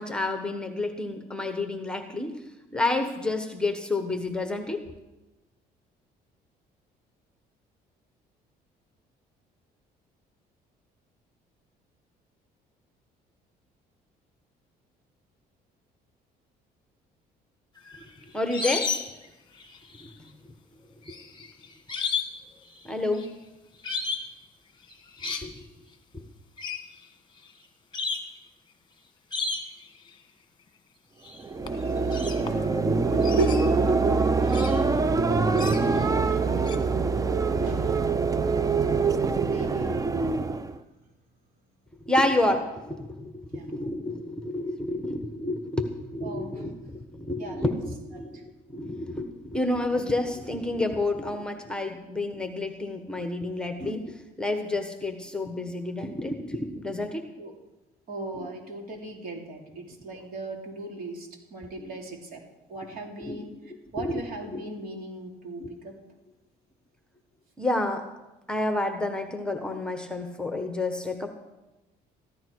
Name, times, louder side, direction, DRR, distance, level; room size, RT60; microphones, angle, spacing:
voice 1, 0.0-2.4 2.7-5.0 18.3-18.9 20.0-20.3 21.1-21.2 22.8-23.3 25.2-25.6 42.0-57.2 58.4-58.5 61.8-62.0 63.2-63.4 64.0-64.2 64.5-64.7 65.6-65.7 67.6-68.0 68.5-71.3, left 2 dB, 5° left, 5 dB, 1.3 m, -30 dB
sound 1, 17.8-19.3 19.5-20.1 21.1-22.4 22.7-23.3 23.8-24.3 24.9-25.5 26.6-26.8 27.5-27.6 27.9-28.3 29.3-29.9 31.2-31.4 31.7-32.8 33.2-34.8 35.6-36.0 36.7-36.8, left 5 dB, 25° left, 1.5 m, -33 dB
sound 2, 31.4-40.8, right 4 dB, 20° right, 0.6 m, -24 dB
voice 2, 33.0-34.3 36.1-36.9 37.6-38.2 39.2-40.0 43.5-43.7 46.2-46.5 47.4-47.7 57.4-57.5 58.1-62.4 62.7-63.5 63.9-65.9, right 2 dB, 60° right, 0 dB, 3.2 m, -36 dB
14.5 x 13.0 x 4.7 m, 1.0 s
cardioid pair, 110°, 17 cm